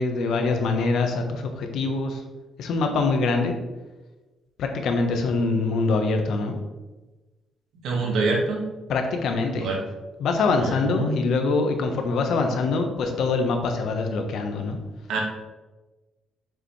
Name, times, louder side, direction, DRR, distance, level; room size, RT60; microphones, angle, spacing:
voice 1, 0.0-2.2 2.6-3.5 4.6-6.5 8.9-9.7 10.2-14.8, left 3 dB, 75° left, 4 dB, 1.2 m, -24 dB
voice 2, 7.8-8.6 9.5-9.8 10.6-11.2 15.1-15.2, right 3 dB, 80° right, 0 dB, 1.9 m, -25 dB
6.8 x 6.5 x 3.3 m, 1.2 s
cardioid pair, 90°, 0 cm